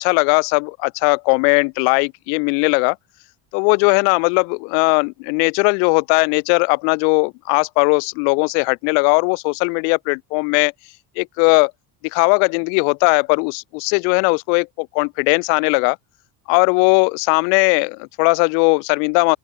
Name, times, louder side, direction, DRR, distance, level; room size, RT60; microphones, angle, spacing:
voice 1, 0.0-3.0 3.5-10.7 11.2-11.7 12.0-16.0 16.5-19.4, left 40 dB or more, 85° left, 1.2 m, -18 dB
open air
supercardioid pair, 95°, 48 cm